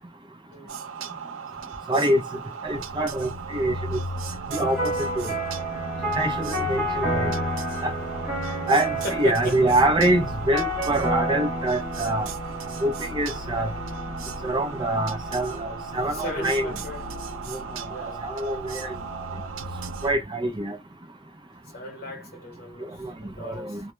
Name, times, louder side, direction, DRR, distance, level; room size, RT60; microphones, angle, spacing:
sound 1, 0.7-20.2, right 3 dB, 75° right, 0.6 m, -35 dB
voice 1, 1.9-2.2 2.6-4.0 4.5-5.3 6.1-7.3 7.8-7.9 8.7-12.3 12.8-13.7 14.4-16.7 17.5-17.6 18.0-18.9 20.0-20.8 23.0-23.1 23.4-23.8, right 1 dB, 25° right, 0.5 m, -25 dB
sound 2, 4.5-19.5, right 1 dB, 5° right, 0.9 m, -32 dB
voice 2, 9.0-9.8 16.1-17.0 17.9-18.2 21.7-23.8, left 2 dB, 50° left, 1.0 m, -36 dB
2.2 x 2.1 x 3.0 m
head